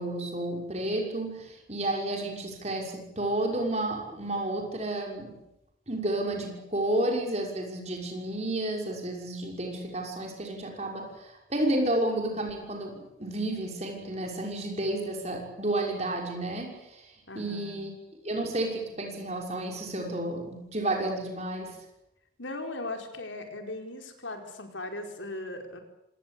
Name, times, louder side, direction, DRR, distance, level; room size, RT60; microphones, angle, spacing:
voice 1, 0.0-5.4 5.9-17.9 18.2-21.8, right 1 dB, 35° right, 1 dB, 6.1 m, -31 dB
voice 2, 17.3-17.8 22.4-25.8, left 2 dB, 80° left, 4 dB, 4.7 m, -38 dB
26.0 x 19.0 x 8.5 m, 0.83 s
head